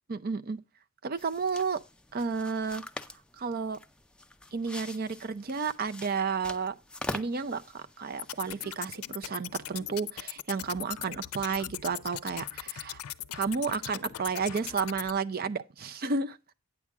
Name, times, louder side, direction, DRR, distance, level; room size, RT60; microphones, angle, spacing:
voice 1, 0.1-0.6 1.0-1.8 2.1-2.8 3.4-3.8 4.5-6.7 7.1-7.6 8.0-13.0 13.3-16.4, right 5 dB, 45° right, 0.5 m, -32 dB
sound 1, 1.2-9.1, left 1 dB, 5° left, 0.5 m, -44 dB
sound 2, 8.2-15.1, left 13 dB, 90° left, 0.5 m, -40 dB
9.2 x 7.3 x 3.6 m
head